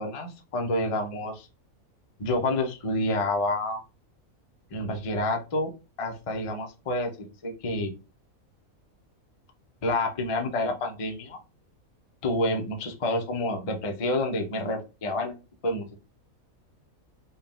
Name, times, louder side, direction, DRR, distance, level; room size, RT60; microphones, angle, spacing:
voice 1, 0.0-1.3 2.2-3.8 4.7-5.7 6.0-7.1 7.4-7.9 9.8-11.4 12.2-15.4 15.6-16.0, left 1 dB, 35° left, 3 dB, 0.5 m, -28 dB
4.1 x 2.3 x 3.6 m, 0.30 s
omnidirectional pair, 1.5 m